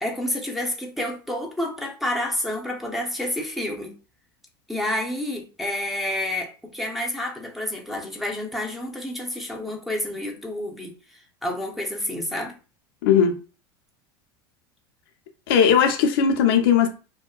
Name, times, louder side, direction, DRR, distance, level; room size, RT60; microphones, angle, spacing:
voice 1, 0.0-3.9 4.7-12.6, left 1 dB, ahead, 0.7 m, -29 dB
voice 2, 13.0-13.4 15.5-16.9, left 7 dB, 75° left, 0.6 m, -18 dB
2.7 x 2.1 x 2.3 m
hypercardioid pair, 95°, 12 cm